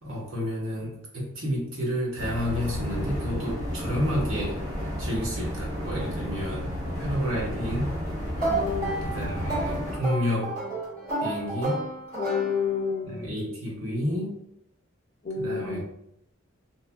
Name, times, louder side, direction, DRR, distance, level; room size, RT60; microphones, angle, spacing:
voice 1, 0.0-4.6 5.0-7.9 9.0-10.6 11.2-11.8 13.0-14.4 15.4-15.8, equal, 75° right, -4 dB, 0.9 m, -30 dB
sound 1, 2.2-10.0, equal, 20° right, 0.9 m, -32 dB
sound 2, 8.4-13.0, right 2 dB, 40° right, 1.1 m, -31 dB
voice 2, 8.5-9.0 12.1-13.3 15.2-15.8, left 6 dB, 40° left, 1 dB, 0.4 m, -29 dB
2.7 x 2.3 x 2.2 m, 0.78 s
head